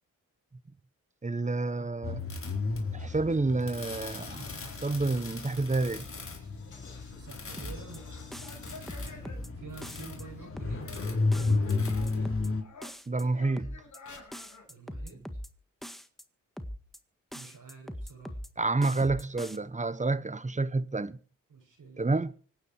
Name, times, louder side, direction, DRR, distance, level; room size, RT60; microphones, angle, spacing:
voice 1, 1.2-2.2 2.9-4.5 4.8-6.0 13.1-13.8 18.6-21.2 22.0-22.3, right 3 dB, 20° right, 1.1 m, -29 dB
sound 1, 2.0-12.6, left 3 dB, 40° left, 4.3 m, -33 dB
sound 2, 2.9-12.3 12.6-14.7, left 3 dB, 60° left, 5.8 m, -52 dB
voice 2, 7.1-8.1 9.6-10.9 11.3-12.5 14.7-15.2 17.3-18.4 21.5-22.0, right 5 dB, 70° right, 7.3 m, -48 dB
sound 3, 7.6-8.0 8.3-9.5 9.8-10.2 10.6-11.0 11.3-12.5 12.8-13.2 13.6-14.0 14.3-15.5 15.8-16.2 16.6-17.0 17.3-18.5 18.8-19.6, equal, ahead, 1.7 m, -41 dB
25.5 x 9.7 x 4.8 m
cardioid pair, 75°, 34 cm